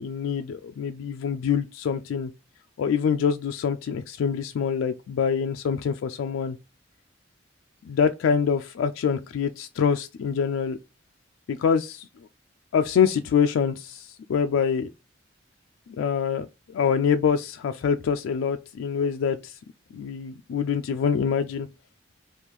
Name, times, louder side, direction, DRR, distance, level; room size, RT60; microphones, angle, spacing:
voice 1, 0.0-2.3 2.8-6.6 7.8-10.8 11.5-12.1 12.7-14.9 16.0-19.5 19.9-21.7, left 7 dB, 85° left, 0.3 m, -25 dB
3.5 x 2.4 x 3.0 m
head